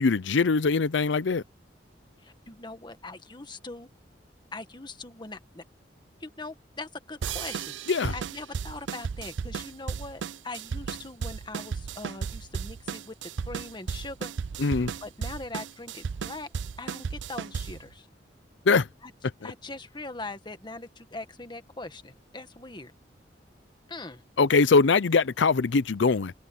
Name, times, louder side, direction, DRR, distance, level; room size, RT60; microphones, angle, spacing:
voice 1, 0.0-1.4 7.9-8.1 14.6-14.9 18.7-18.9 24.4-26.3, left 4 dB, 85° left, 0.6 m, -22 dB
voice 2, 2.2-3.9 4.5-5.6 6.2-7.8 8.1-13.1 13.4-14.3 14.6-16.5 16.8-18.1 19.0-19.1 19.4-22.9 23.9-24.2, left 3 dB, 25° left, 1.6 m, -41 dB
sound 1, 7.2-17.9, right 6 dB, 85° right, 0.5 m, -35 dB
head